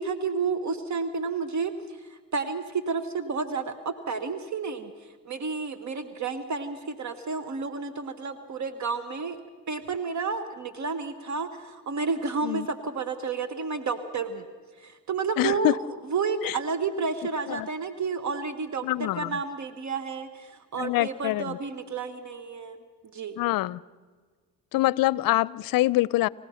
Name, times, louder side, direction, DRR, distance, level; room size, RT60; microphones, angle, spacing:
voice 1, 0.0-1.7 2.0-4.9 5.2-9.4 9.7-14.4 14.8-15.8 16.1-22.8 23.1-23.4, right 5 dB, 45° right, 11 dB, 1.3 m, -31 dB
voice 2, 15.4-15.8 16.4-16.6 17.5-17.7 18.8-19.4 20.7-21.6 23.4-23.8 24.7-26.3, left 17 dB, 60° left, 22 dB, 0.6 m, -25 dB
29.0 x 16.0 x 5.7 m, 1.5 s
supercardioid pair, 65°, 38 cm